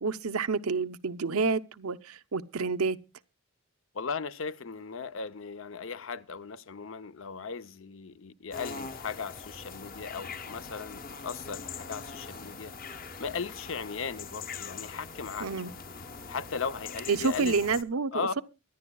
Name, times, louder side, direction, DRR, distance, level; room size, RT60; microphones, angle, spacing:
voice 1, 0.0-3.0 15.4-15.7 17.1-18.4, right 4 dB, 85° right, 0.8 m, -29 dB
voice 2, 3.9-12.7 13.2-15.5 16.3-17.6 18.1-18.4, left 5 dB, 60° left, 0.6 m, -37 dB
sound 1, 8.5-17.8, left 5 dB, 40° left, 1.0 m, -42 dB
24.0 x 11.0 x 2.3 m
head